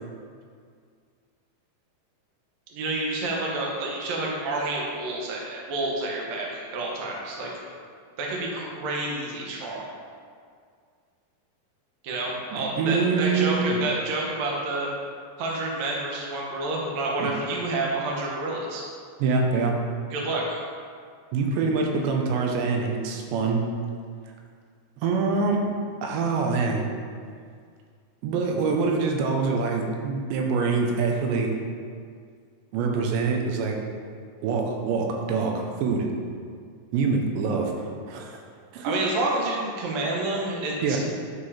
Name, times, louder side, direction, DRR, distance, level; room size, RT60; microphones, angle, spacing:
voice 1, 2.7-7.5 8.2-9.8 12.0-14.9 15.4-18.8 20.1-20.6 38.8-41.0, right 2 dB, 60° right, -2 dB, 1.9 m, -29 dB
voice 2, 12.5-13.8 17.2-17.3 19.2-19.7 21.3-23.6 25.0-25.6 26.0-26.9 28.2-31.5 32.7-33.8 34.4-36.1 36.9-37.7 38.1-38.4 38.7-39.0 40.8-41.0, right 4 dB, 90° right, 1 dB, 3.2 m, -25 dB
12.5 x 4.9 x 4.3 m, 2.1 s
omnidirectional pair, 4.9 m